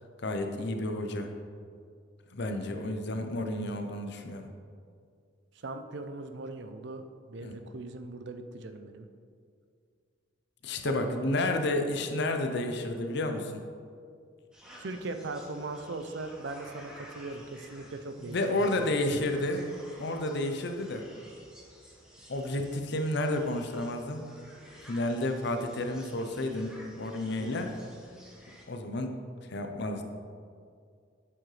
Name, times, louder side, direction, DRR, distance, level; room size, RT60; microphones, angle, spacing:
voice 1, 0.2-1.3 2.3-4.5 7.4-7.5 10.6-13.6 18.2-19.7 20.0-21.0 22.3-24.2 24.9-27.7 28.7-29.1 29.5-30.0, left 1 dB, 60° left, 5 dB, 0.7 m, -31 dB
voice 2, 5.5-7.0 7.3-9.1 11.0-11.3 14.8-18.9 27.4-27.5, right 2 dB, 60° right, 8 dB, 0.5 m, -39 dB
sound 1, 14.5-28.7, equal, 5° right, 1.0 m, -53 dB
7.9 x 7.6 x 3.3 m, 2.2 s
head